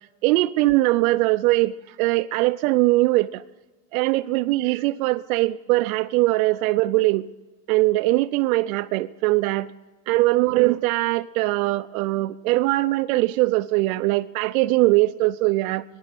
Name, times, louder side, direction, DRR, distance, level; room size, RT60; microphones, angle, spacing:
voice 1, 0.2-3.4 3.9-7.3 7.7-9.7 10.1-15.8, right 19 dB, 90° right, 0.5 m, -21 dB
10.5 x 10.5 x 8.1 m
supercardioid pair, 140°, 41 cm